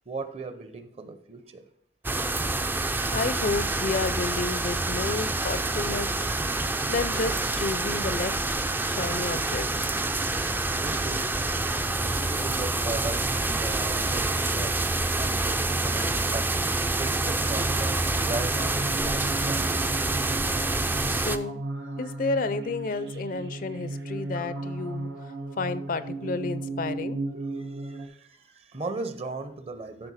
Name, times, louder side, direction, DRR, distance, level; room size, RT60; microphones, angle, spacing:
voice 1, 0.1-1.7 10.7-11.3 12.0-19.8 27.5-30.1, right 3 dB, 35° right, 9 dB, 0.7 m, -38 dB
sound 1, 2.0-21.4, right 2 dB, 10° right, 0.3 m, -27 dB
voice 2, 3.1-6.3 6.9-8.4 8.8-9.7 21.1-21.6 22.0-27.2, left 3 dB, 50° left, 14 dB, 0.5 m, -31 dB
sound 2, 17.2-28.1, right 2 dB, 85° right, 1.2 m, -35 dB
13.0 x 4.3 x 4.1 m, 0.66 s
head